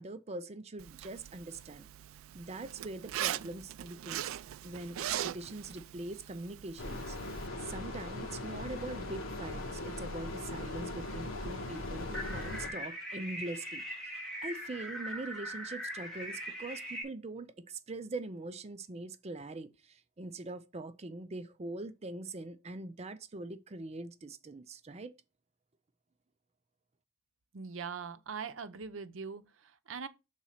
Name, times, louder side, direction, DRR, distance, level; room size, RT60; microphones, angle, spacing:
voice 1, 0.0-1.9 2.3-13.8 14.4-25.1, right 2 dB, 30° right, 0.5 m, -43 dB
Zipper (clothing), 0.8-7.5, right 12 dB, 90° right, 0.3 m, -41 dB
sound 1, 6.8-12.7, left 2 dB, 80° left, 1.5 m, -39 dB
sound 2, 12.1-17.0, equal, ahead, 1.9 m, -41 dB
voice 2, 27.5-30.1, right 5 dB, 75° right, 0.7 m, -42 dB
6.3 x 4.1 x 5.6 m
head